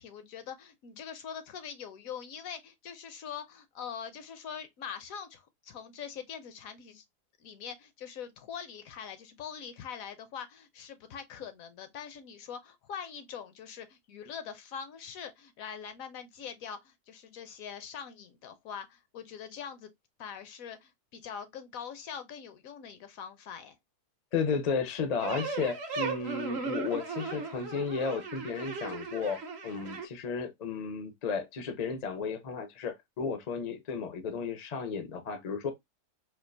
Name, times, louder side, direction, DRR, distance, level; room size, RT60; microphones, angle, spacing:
voice 1, 0.0-7.0 7.4-19.9 20.2-23.8, left 7 dB, 70° left, 1.0 m, -43 dB
voice 2, 24.3-35.7, left 5 dB, 50° left, 0.4 m, -33 dB
sound 1, 25.2-30.0, right 4 dB, 55° right, 0.8 m, -37 dB
4.3 x 2.4 x 2.5 m
omnidirectional pair, 1.7 m